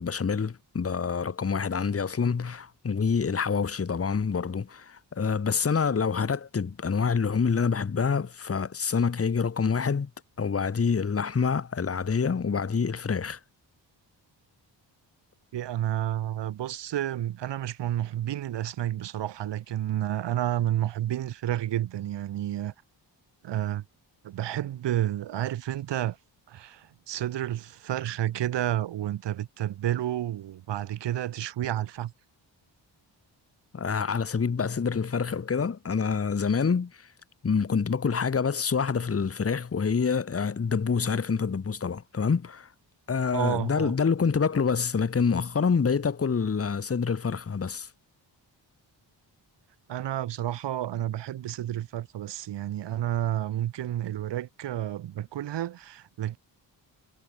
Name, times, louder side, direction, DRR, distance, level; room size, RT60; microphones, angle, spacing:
voice 1, 0.0-10.1 10.4-13.4 33.7-37.1 37.4-42.7 43.1-47.9, left 5 dB, 30° left, 1.3 m, -27 dB
voice 2, 15.5-22.7 23.4-23.8 24.2-26.2 26.5-32.1 43.3-43.9 49.9-56.4, right 12 dB, 65° right, 0.8 m, -30 dB
cardioid pair, 85°, 45 cm